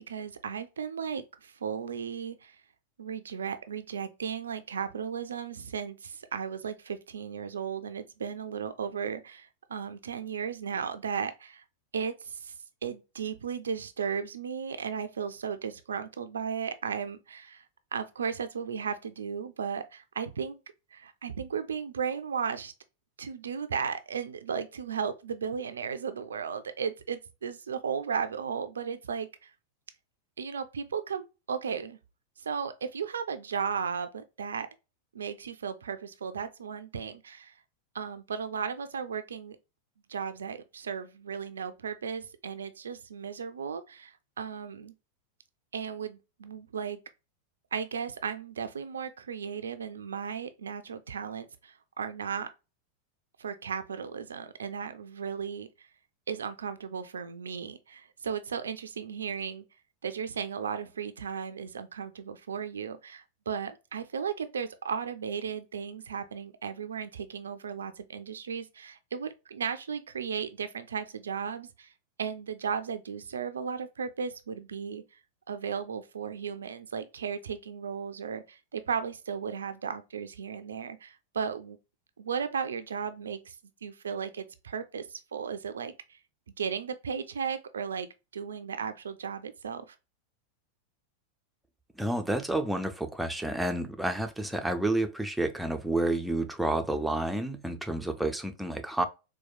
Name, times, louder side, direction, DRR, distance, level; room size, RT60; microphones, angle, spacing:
voice 1, 0.0-2.6 3.0-11.6 11.9-12.5 12.8-17.6 17.9-20.6 20.9-22.7 23.2-29.5 30.4-32.0 32.4-34.7 35.1-37.5 37.9-39.6 40.1-44.9 45.7-47.0 47.7-52.5 53.4-55.9 56.3-59.7 60.0-71.9 72.2-75.0 75.5-81.8 82.2-83.6 83.8-86.2 86.6-90.0, right 6 dB, 70° right, 0.3 m, -35 dB
voice 2, 92.0-99.0, right 1 dB, 5° right, 0.5 m, -30 dB
4.2 x 2.2 x 2.3 m
figure-of-eight pair, 90°, 0 cm